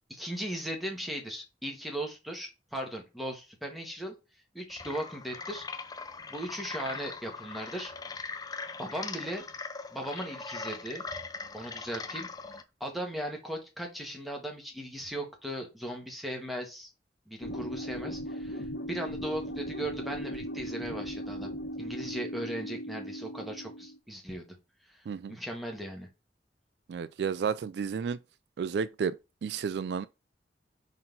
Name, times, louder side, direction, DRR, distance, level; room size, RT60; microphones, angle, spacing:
voice 1, 0.1-4.1 4.5-5.7 6.3-7.9 8.2-8.3 8.8-9.4 9.9-11.0 11.5-12.3 12.8-16.9 17.3-21.5 21.8-24.4 24.9-26.1, right 1 dB, ahead, 1.6 m, -38 dB
sound 1, 4.7-12.6, left 4 dB, 20° left, 0.5 m, -40 dB
sound 2, 17.4-24.0, equal, 80° left, 1.4 m, -38 dB
voice 2, 25.1-25.4 26.9-28.2 28.6-30.1, right 6 dB, 70° right, 0.3 m, -32 dB
4.4 x 4.0 x 5.4 m
head